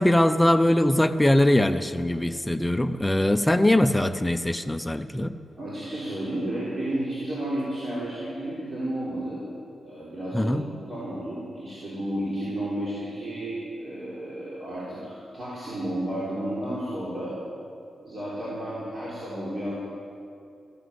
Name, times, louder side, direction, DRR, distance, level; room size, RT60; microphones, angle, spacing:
voice 1, 0.0-5.3 10.3-10.6, left 1 dB, 10° left, 10 dB, 0.6 m, -21 dB
voice 2, 5.6-9.4 9.8-10.6 10.9-17.4 18.0-19.7, right 1 dB, 30° right, -9 dB, 3.9 m, -32 dB
14.5 x 11.0 x 8.1 m, 2.5 s
wide cardioid pair, 135°, 0 cm